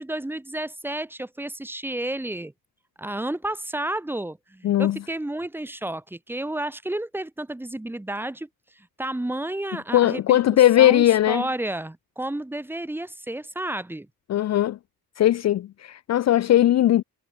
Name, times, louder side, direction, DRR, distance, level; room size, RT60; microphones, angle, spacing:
voice 1, 0.0-2.5 3.0-8.5 8.8-10.4 10.8-14.1, right 1 dB, 5° right, 2.3 m, -31 dB
voice 2, 4.6-5.0 9.9-11.4 14.3-14.8 15.2-17.0, left 12 dB, 45° left, 0.6 m, -19 dB
cardioid pair, 170°, 36 cm